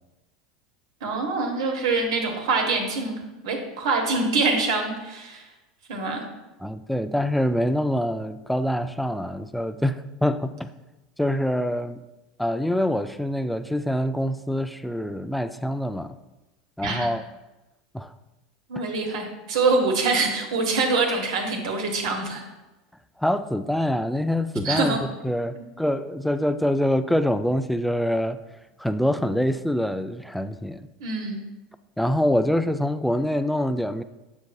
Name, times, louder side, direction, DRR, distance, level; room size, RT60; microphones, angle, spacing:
voice 1, 1.0-5.4 5.9-6.2 16.8-17.1 18.7-22.4 24.6-25.0 31.0-31.4, right 3 dB, 75° right, 3 dB, 1.3 m, -25 dB
voice 2, 6.6-10.7 11.2-12.0 12.4-16.2 16.8-17.2 17.9-18.1 23.2-28.4 28.8-30.8 32.0-34.0, equal, ahead, 10 dB, 0.3 m, -25 dB
7.0 x 6.2 x 2.3 m, 1.1 s
hypercardioid pair, 95°, 3 cm